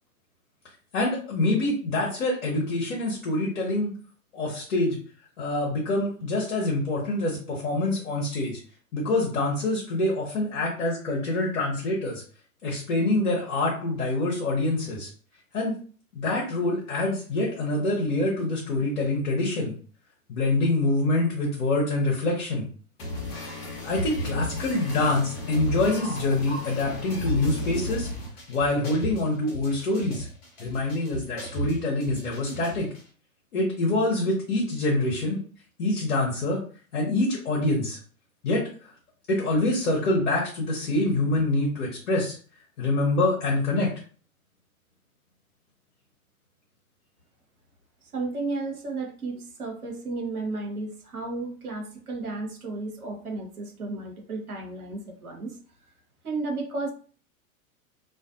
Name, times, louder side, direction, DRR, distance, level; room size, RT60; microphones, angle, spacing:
voice 1, 0.9-3.9 4.3-5.0 5.4-8.6 8.9-12.2 12.6-15.1 15.5-15.7 16.1-19.8 20.3-22.7 23.8-28.1 28.5-30.3 30.6-32.9 33.5-35.4 35.8-36.6 36.9-38.0 38.4-38.9 39.3-42.4 42.8-43.9, left 2 dB, 60° left, -3 dB, 1.0 m, -25 dB
sound 1, 23.0-33.0, equal, 40° left, 1.1 m, -34 dB
voice 2, 48.1-55.6 56.2-56.9, right 3 dB, 80° right, 1 dB, 1.0 m, -33 dB
2.5 x 2.5 x 2.4 m, 0.42 s
figure-of-eight pair, 100°, 44 cm